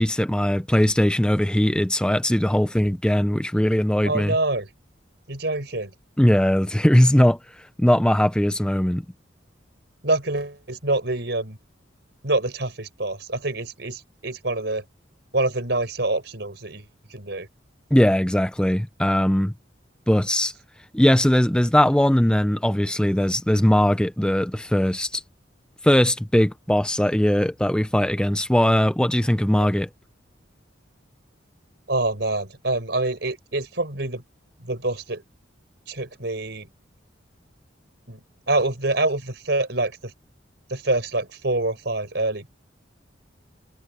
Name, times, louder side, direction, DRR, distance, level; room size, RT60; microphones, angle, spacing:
voice 1, 0.0-4.3 6.2-7.4 7.8-9.0 17.9-19.5 20.1-20.5 20.9-25.2 25.8-29.9, equal, 5° left, 0.5 m, -20 dB
voice 2, 4.0-4.7 5.3-5.9 10.0-11.6 12.2-14.8 15.3-17.5 29.6-29.7 31.9-34.2 34.6-35.2 35.9-36.7 38.1-40.1 40.7-42.5, right 2 dB, 60° right, 4.8 m, -26 dB
head